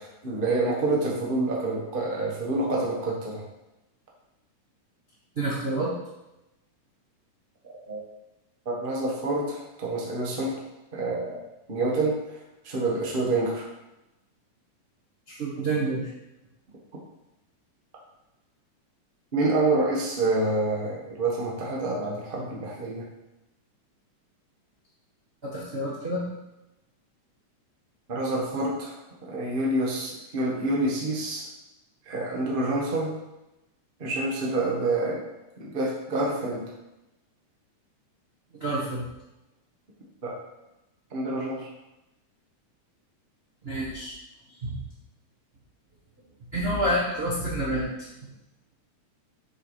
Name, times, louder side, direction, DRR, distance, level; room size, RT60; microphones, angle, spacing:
voice 1, 0.0-3.4 7.7-8.0 8.6-10.6 10.9-11.4 11.7-12.2 12.6-13.6 19.3-23.1 28.1-28.9 29.3-31.4 32.1-33.1 34.0-35.2 35.6-36.6 40.2-40.4 41.1-41.7, right 2 dB, 60° right, -3 dB, 0.5 m, -27 dB
voice 2, 5.3-5.9 15.3-16.1 25.4-26.2 38.5-39.0 43.6-44.1 44.6-44.8 46.5-48.1, right 1 dB, 35° right, -7 dB, 0.9 m, -28 dB
8.1 x 4.9 x 5.0 m, 0.96 s
omnidirectional pair, 3.7 m